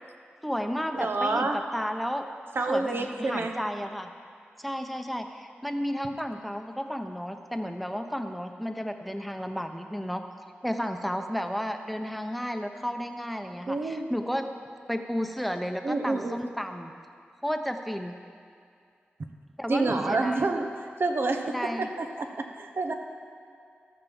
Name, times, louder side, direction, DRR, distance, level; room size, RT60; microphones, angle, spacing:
voice 1, 0.4-2.3 2.7-4.1 4.6-10.2 10.6-14.4 14.9-16.9 17.4-18.1 19.6-20.4 21.4-21.9, equal, ahead, 5 dB, 0.9 m, -32 dB
voice 2, 0.9-1.6 2.5-3.5 13.7-14.1 15.8-16.4 19.7-20.7 21.0-22.9, right 3 dB, 65° right, 4 dB, 1.0 m, -28 dB
14.0 x 6.0 x 7.2 m, 2.3 s
cardioid pair, 60°, 4 cm